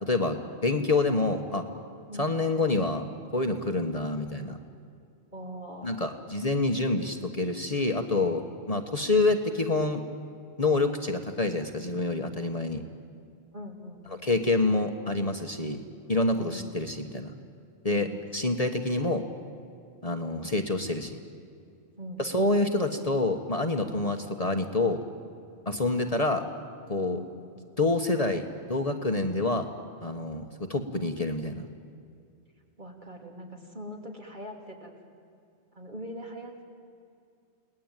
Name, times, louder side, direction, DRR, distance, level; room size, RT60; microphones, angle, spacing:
voice 1, 0.0-1.7 2.2-3.0 3.3-4.6 5.8-10.0 10.6-12.8 14.2-15.8 16.1-17.3 17.8-18.1 18.3-19.2 20.0-21.2 22.2-25.0 25.6-26.4 26.9-27.2 27.8-28.4 28.7-29.7 30.0-31.7, left 2 dB, 35° left, 5 dB, 1.4 m, -27 dB
voice 2, 5.3-6.3 13.5-14.3 16.4-16.6 17.9-18.1 22.0-22.5 27.1-27.3 32.8-34.9 35.7-36.6, equal, 45° right, 1 dB, 3.6 m, -42 dB
30.0 x 19.5 x 9.1 m, 2.4 s
omnidirectional pair, 1.1 m